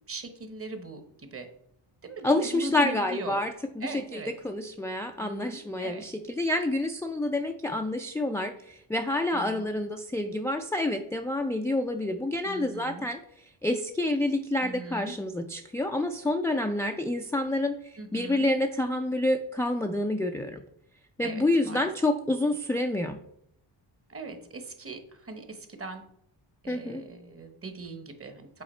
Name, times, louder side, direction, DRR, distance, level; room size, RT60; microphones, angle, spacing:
voice 1, 0.1-1.5 2.0-3.4 3.8-4.3 5.2-6.0 9.3-9.7 12.4-13.1 14.6-15.1 18.0-18.5 21.2-21.9 24.1-26.0 26.6-28.6, right 3 dB, 30° right, 7 dB, 1.0 m, -40 dB
voice 2, 2.2-13.2 13.6-20.6 21.2-23.2 26.7-27.0, left 1 dB, 5° left, 4 dB, 0.3 m, -28 dB
7.8 x 4.1 x 4.3 m, 0.73 s
cardioid pair, 95°, 46 cm